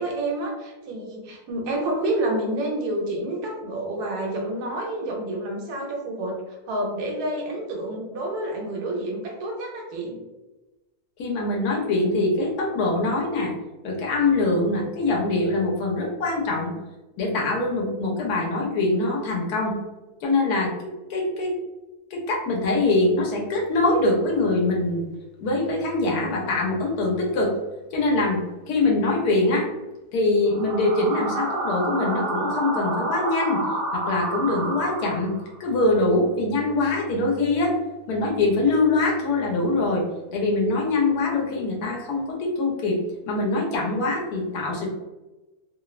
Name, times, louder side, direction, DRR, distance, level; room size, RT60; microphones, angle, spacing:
voice 1, 0.0-10.2, right 1 dB, 85° right, 0 dB, 1.2 m, -29 dB
voice 2, 11.2-13.5 13.8-16.7 17.2-19.8 20.2-20.7 21.1-21.5 22.1-25.0 25.4-27.5 27.9-28.4 28.7-29.7 30.1-33.6 33.9-35.3 35.6-37.7 38.1-40.0 40.3-43.0 43.3-44.9, left 2 dB, 80° left, -1 dB, 1.2 m, -23 dB
sound 1, 30.5-35.6, right 2 dB, 60° right, 1.0 m, -29 dB
3.0 x 2.0 x 2.3 m, 1.1 s
omnidirectional pair, 1.7 m